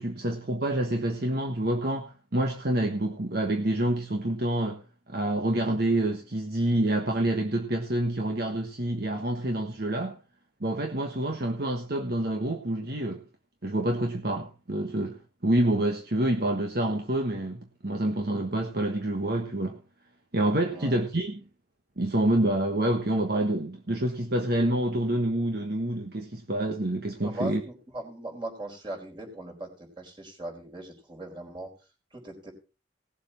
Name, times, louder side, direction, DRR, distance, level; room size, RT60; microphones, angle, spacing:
voice 1, 0.0-4.8 5.1-10.2 10.6-13.2 13.6-19.8 20.3-21.4 22.0-27.6, right 1 dB, 55° right, 3 dB, 1.4 m, -27 dB
voice 2, 20.7-21.0 27.2-31.7 32.1-32.5, right 2 dB, 25° right, 0 dB, 4.3 m, -39 dB
18.5 x 7.6 x 4.3 m, 0.33 s
head